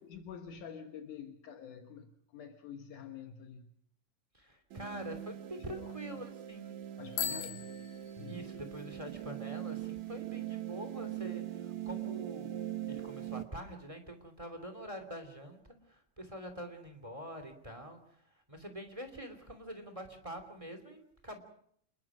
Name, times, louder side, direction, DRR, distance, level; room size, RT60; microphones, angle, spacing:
voice 1, 0.0-3.7 5.6-6.0 7.0-7.7 8.2-8.4, left 7 dB, 70° left, 2.7 m, -47 dB
voice 2, 4.3-6.8 7.3-7.4 8.3-15.6 15.9-18.0 18.5-21.4, equal, 10° right, 2.5 m, -45 dB
sound 1, 4.7-13.4, right 12 dB, 65° right, 2.5 m, -41 dB
Bicycle bell, 7.1-8.8, left 8 dB, 85° left, 3.7 m, -40 dB
28.0 x 21.0 x 6.2 m
omnidirectional pair, 3.8 m